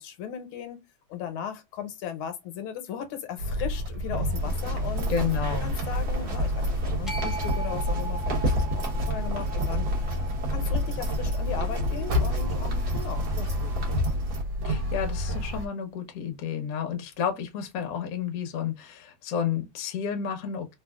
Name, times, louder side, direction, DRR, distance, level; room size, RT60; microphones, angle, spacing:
voice 1, 0.0-5.1 5.6-10.1 10.5-13.8, left 9 dB, 80° left, 1.5 m, -37 dB
sound 1, 3.4-15.7, left 1 dB, 75° right, 1.4 m, -29 dB
sound 2, 4.2-14.4, equal, 45° right, 0.8 m, -32 dB
voice 2, 5.1-5.7 14.6-20.7, left 8 dB, 60° left, 0.9 m, -31 dB
sound 3, 7.1-13.3, right 3 dB, ahead, 0.5 m, -41 dB
3.4 x 2.4 x 2.2 m
omnidirectional pair, 2.3 m